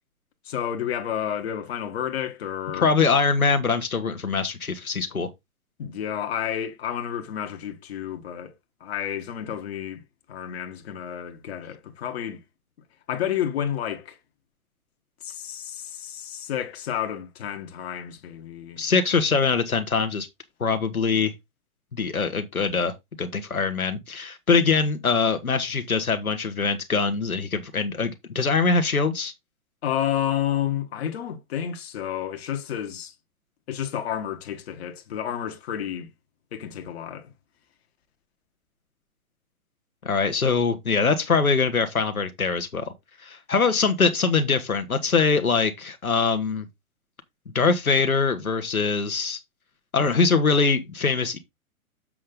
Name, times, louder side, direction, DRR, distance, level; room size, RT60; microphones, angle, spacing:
voice 1, 0.4-2.9 5.8-8.5 8.8-10.0 10.3-12.4 13.1-14.2 15.2-18.9 29.8-33.1 33.7-36.1 36.5-37.3, left 10 dB, 45° left, 1.5 m, -30 dB
voice 2, 2.7-5.3 18.8-20.3 20.6-21.3 21.9-29.3 40.0-42.9 43.2-46.6 47.5-49.4 49.9-51.4, left 4 dB, 75° left, 1.4 m, -23 dB
7.6 x 5.5 x 3.8 m
figure-of-eight pair, 115°, 43 cm